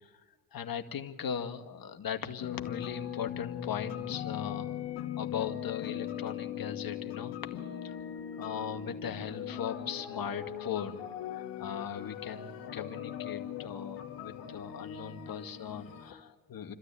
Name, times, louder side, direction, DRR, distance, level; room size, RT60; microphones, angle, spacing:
voice 1, 0.5-4.8 5.2-7.3 7.8-7.9 8.4-11.0 11.3-16.7, left 8 dB, 50° left, 6 dB, 2.1 m, -38 dB
sound 1, 2.4-16.1, left 10 dB, 65° left, 2.2 m, -40 dB
29.0 x 13.0 x 8.6 m, 1.4 s
supercardioid pair, 65°, 45 cm